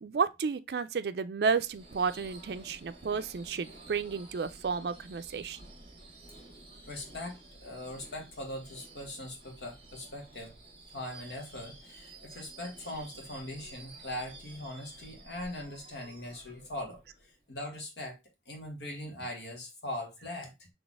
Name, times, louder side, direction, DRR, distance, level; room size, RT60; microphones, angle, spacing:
voice 1, 0.0-5.6, right 5 dB, 65° right, 0.4 m, -32 dB
Subway metro underground / Screech, 1.5-17.5, right 2 dB, 30° right, 1.2 m, -52 dB
voice 2, 6.9-10.5 10.9-18.2 18.4-20.7, left 1 dB, 80° left, 1.6 m, -41 dB
4.1 x 3.2 x 3.4 m
head